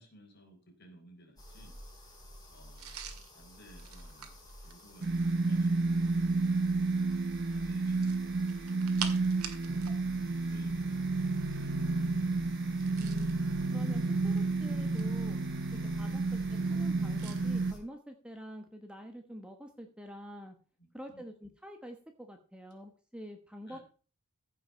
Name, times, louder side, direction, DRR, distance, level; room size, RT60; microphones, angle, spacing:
voice 1, 0.0-6.9 7.5-8.4 9.0-9.8 10.1-12.6 16.1-16.2 20.8-21.2 23.7-23.8, equal, 50° left, 3 dB, 4.0 m, -59 dB
sound 1, 1.4-17.8, equal, 15° left, 4.7 m, -51 dB
sound 2, 2.8-5.4 7.9-10.0 10.3-10.4 12.7-13.4 14.2-15.3 17.2-17.4, right 8 dB, 85° right, 2.0 m, -45 dB
sound 3, 5.0-17.7, right 3 dB, 50° right, 0.6 m, -31 dB
voice 2, 13.0-13.3 13.7-15.4 15.8-20.6 20.9-23.8, equal, 5° right, 5 dB, 1.1 m, -47 dB
15.0 x 5.9 x 5.6 m, 0.37 s
head